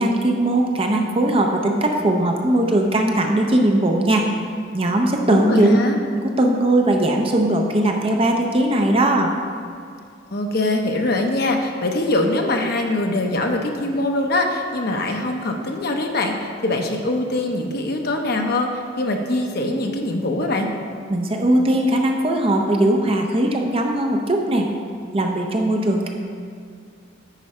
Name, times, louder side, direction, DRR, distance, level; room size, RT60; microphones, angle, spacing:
voice 1, 0.0-4.3 4.7-5.8 6.1-9.3 21.1-24.7 25.1-26.1, right 1 dB, 30° right, 2 dB, 0.6 m, -19 dB
voice 2, 5.3-6.0 10.3-20.7, left 2 dB, 55° left, 3 dB, 0.8 m, -23 dB
9.9 x 4.7 x 4.2 m, 2.2 s
head